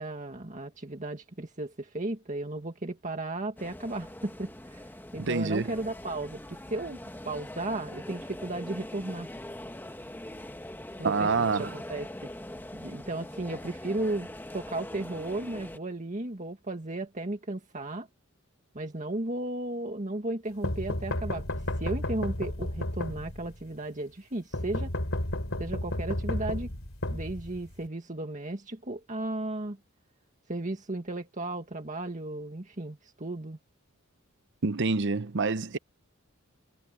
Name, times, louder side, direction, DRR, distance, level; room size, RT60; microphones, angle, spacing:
voice 1, 0.0-4.8 5.1-7.0 7.2-9.3 11.0-12.1 12.7-14.3 14.5-18.1 18.7-24.9 25.6-26.7 27.1-29.8 30.5-33.6, right 2 dB, 35° right, 1.9 m, -35 dB
sound 1, 3.6-15.8, left 1 dB, 10° left, 1.3 m, -42 dB
voice 2, 5.2-5.8 11.0-11.7 34.6-35.8, right 4 dB, 55° right, 0.8 m, -27 dB
sound 2, 20.6-23.6 24.5-27.9, left 1 dB, 70° left, 3.7 m, -32 dB
head